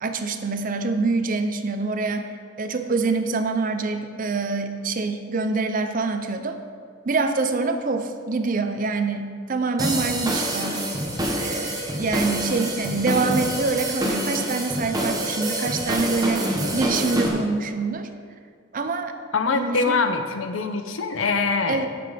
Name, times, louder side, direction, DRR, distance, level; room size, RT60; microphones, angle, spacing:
voice 1, 0.0-6.6 7.0-10.9 11.4-18.1 18.7-19.1 19.5-19.9 21.7-21.9, right 3 dB, 45° right, 8 dB, 0.6 m, -25 dB
sound 1, 9.8-17.3, right 1 dB, 20° right, 1.1 m, -26 dB
voice 2, 19.3-21.9, left 4 dB, 80° left, 7 dB, 0.7 m, -23 dB
7.9 x 7.7 x 5.1 m, 2.2 s
head